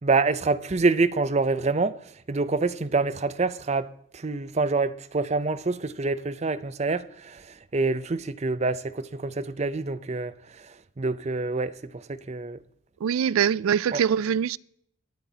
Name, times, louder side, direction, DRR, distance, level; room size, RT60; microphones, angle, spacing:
voice 1, 0.0-12.6 13.9-14.0, right 3 dB, 35° right, 0.5 m, -27 dB
voice 2, 13.0-14.6, right 8 dB, 85° right, 0.3 m, -23 dB
23.0 x 8.9 x 2.8 m
head